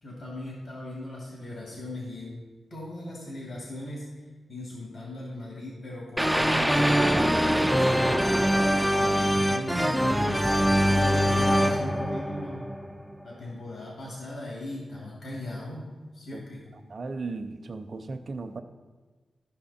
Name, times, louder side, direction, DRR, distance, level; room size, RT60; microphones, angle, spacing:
voice 1, 0.0-2.4 2.7-7.2 7.7-8.3 9.0-12.7 13.2-16.7, left 1 dB, 65° left, -4 dB, 2.6 m, -39 dB
sound 1, 6.2-13.1, equal, ahead, 0.4 m, -23 dB
voice 2, 16.9-18.6, right 3 dB, 45° right, 7 dB, 0.7 m, -36 dB
13.5 x 5.8 x 4.3 m, 1.4 s
wide cardioid pair, 125°, 0 cm